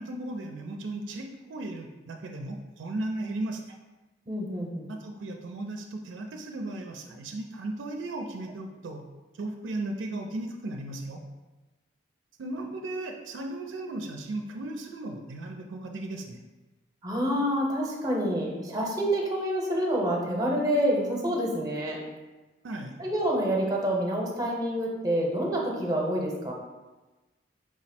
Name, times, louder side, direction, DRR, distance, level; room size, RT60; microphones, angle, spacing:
voice 1, 0.0-3.8 4.9-9.1 9.4-11.2 12.4-16.4 22.6-23.0, right 2 dB, 70° right, 3 dB, 0.4 m, -36 dB
voice 2, 4.3-4.9 17.0-22.0 23.0-26.5, equal, 20° right, -2 dB, 0.7 m, -27 dB
4.7 x 2.0 x 4.2 m, 1.2 s
head